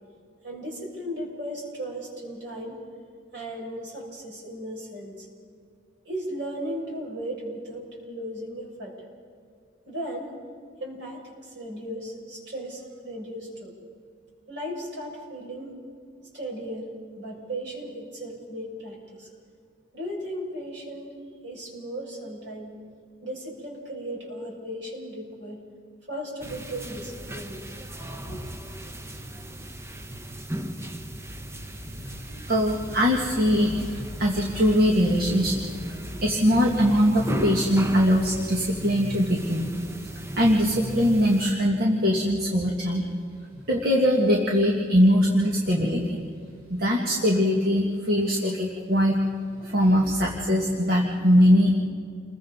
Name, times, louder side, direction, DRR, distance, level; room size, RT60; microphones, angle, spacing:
voice 1, 0.4-2.8 3.3-5.3 6.0-8.9 9.9-10.3 10.8-13.7 14.5-15.7 16.3-19.3 19.9-21.1 21.4-22.8 23.2-25.6 26.1-27.6 28.3-28.4 43.5-43.7 49.6-49.8, equal, 70° right, -2 dB, 6.3 m, -36 dB
sound 1, 26.4-41.5, right 1 dB, 15° right, 0.9 m, -36 dB
voice 2, 32.5-35.6 35.9-39.6 40.2-43.0 43.7-46.2 46.7-49.2 49.6-51.8, equal, 55° right, -2 dB, 2.1 m, -22 dB
29.5 x 22.0 x 4.0 m, 2.2 s
head